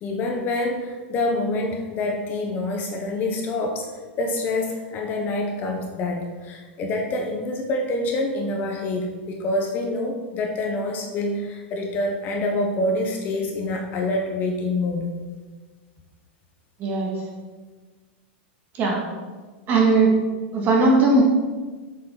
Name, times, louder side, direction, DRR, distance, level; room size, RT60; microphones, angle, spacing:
voice 1, 0.0-3.9 4.2-15.1, left 2 dB, 30° left, 2 dB, 0.9 m, -26 dB
voice 2, 19.7-20.1 20.5-21.2, right 3 dB, 30° right, -1 dB, 2.0 m, -18 dB
7.8 x 6.6 x 3.9 m, 1.4 s
supercardioid pair, 150°, 6 cm